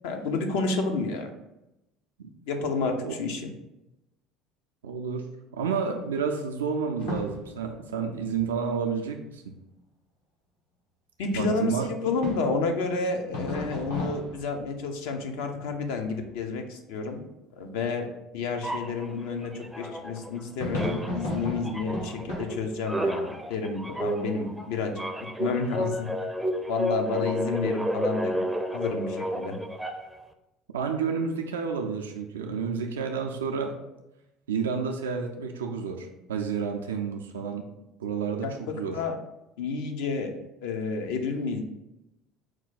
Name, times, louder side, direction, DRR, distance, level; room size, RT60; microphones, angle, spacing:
voice 1, 0.0-1.3 2.5-3.5 11.2-17.2 17.5-18.1 18.3-24.9 25.2-26.1 26.7-28.4 28.7-29.6 38.4-39.1 39.6-40.3 40.6-41.6, left 4 dB, 70° left, 4 dB, 0.6 m, -30 dB
voice 2, 4.8-5.3 5.5-9.5 11.4-11.9 30.7-33.8 34.5-37.6 38.0-39.0, right 6 dB, 85° right, 3 dB, 0.3 m, -30 dB
sound 1, 7.0-8.9 12.2-15.3 15.6-16.6 20.5-22.6, left 1 dB, 90° left, 1.5 m, -36 dB
sound 2, 18.6-20.4 20.7-30.2, equal, 5° right, 0.4 m, -31 dB
4.5 x 2.2 x 3.9 m, 0.93 s
hypercardioid pair, 70°, 0 cm